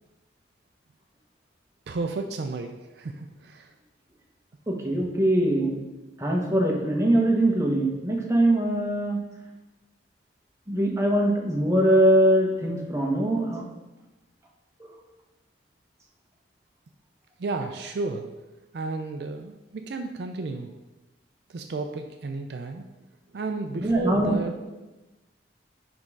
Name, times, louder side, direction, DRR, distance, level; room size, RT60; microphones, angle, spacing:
voice 1, 1.9-3.7 17.4-18.3 18.7-20.7 21.5-22.9 23.3-24.9, right 3 dB, 65° right, 5 dB, 0.4 m, -32 dB
voice 2, 4.7-5.8 6.2-9.2 10.7-13.6 14.8-14.9 23.8-24.4, right 1 dB, 15° right, -1 dB, 0.9 m, -22 dB
5.2 x 3.6 x 5.2 m, 1.1 s
head